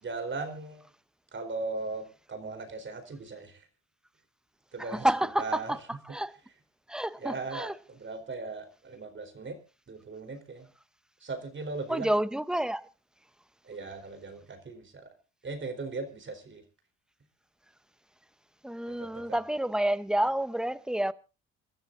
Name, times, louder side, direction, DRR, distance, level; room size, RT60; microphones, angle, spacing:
voice 1, 0.0-0.8 1.3-3.7 4.7-5.1 5.4-5.7 7.2-9.6 9.9-10.7 11.2-12.1 13.6-15.1 15.4-16.6 19.0-19.2, right 3 dB, 40° right, 4.3 m, -38 dB
voice 2, 4.8-6.4 6.9-7.7 11.9-12.9 18.6-21.1, right 1 dB, ahead, 0.9 m, -29 dB
28.5 x 13.0 x 2.7 m
cardioid pair, 90°, 30 cm